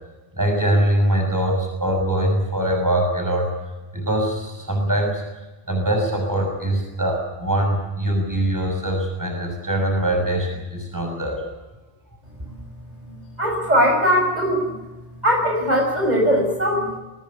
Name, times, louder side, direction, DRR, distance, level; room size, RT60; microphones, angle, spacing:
voice 1, 0.3-3.5 3.9-5.2 5.7-11.4, right 1 dB, 15° right, 3 dB, 6.3 m, -22 dB
voice 2, 13.1-14.8 15.2-17.0, equal, 35° right, 1 dB, 6.2 m, -20 dB
24.0 x 19.0 x 8.3 m, 1.1 s
omnidirectional pair, 1.2 m